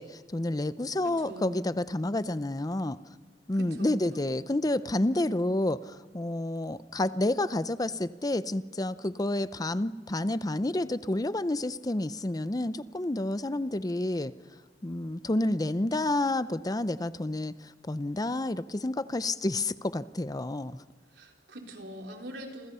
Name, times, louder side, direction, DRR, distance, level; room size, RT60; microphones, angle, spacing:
voice 1, 0.0-3.0 3.5-14.3 14.8-20.8, left 1 dB, 20° left, 14 dB, 0.6 m, -29 dB
voice 2, 1.0-1.6 3.5-4.4 21.1-22.7, right 1 dB, 80° right, 1 dB, 3.9 m, -43 dB
28.0 x 26.5 x 5.6 m, 1.4 s
head